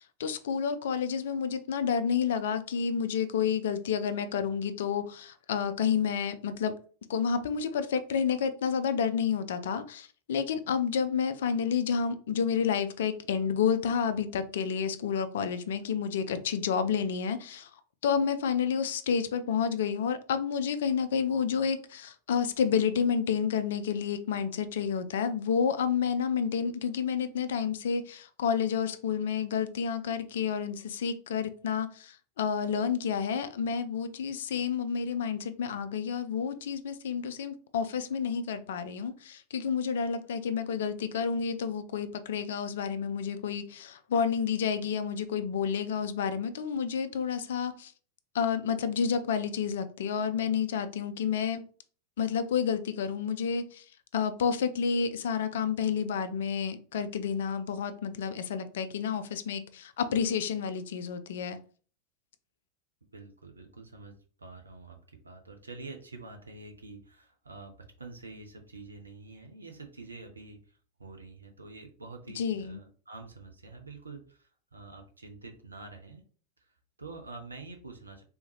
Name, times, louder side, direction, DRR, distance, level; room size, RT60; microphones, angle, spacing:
voice 1, 0.0-6.7 7.1-17.7 18.0-47.9 48.3-51.6 52.2-53.8 54.1-61.6 72.4-72.8, left 7 dB, 60° left, 0.4 m, -30 dB
voice 2, 63.1-65.0 65.2-76.2 76.6-78.2, right 3 dB, 75° right, 0.5 m, -47 dB
3.5 x 2.7 x 3.0 m
figure-of-eight pair, 90°, 0 cm